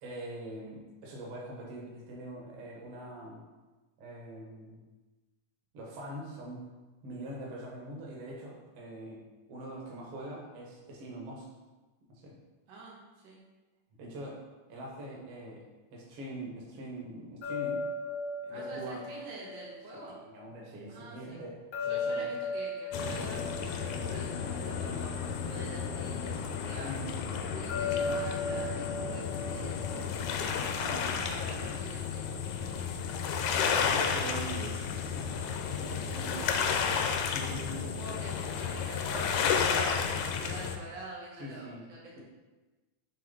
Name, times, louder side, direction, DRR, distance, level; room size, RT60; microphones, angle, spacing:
voice 1, 0.0-3.4 4.0-4.8 5.7-6.6 7.0-11.5 12.1-12.4 14.0-14.4 14.7-17.9 18.4-19.1 19.9-22.3 26.8-27.2 30.9-31.0 33.7-35.3 35.7-36.3 37.3-37.8 41.4-41.8, right 1 dB, 60° right, -3 dB, 1.9 m, -43 dB
voice 2, 12.7-13.4 18.5-20.2 20.9-21.4 21.8-26.9 27.3-32.3 36.3-36.9 37.6-42.2, right 2 dB, 85° right, -4 dB, 2.6 m, -46 dB
sound 1, 17.4-20.5 21.7-25.2 27.7-30.8, left 3 dB, 60° left, 0.9 m, -37 dB
sound 2, 22.9-40.8, left 6 dB, 80° left, 1.9 m, -32 dB
7.6 x 3.3 x 3.8 m, 1.2 s
omnidirectional pair, 3.4 m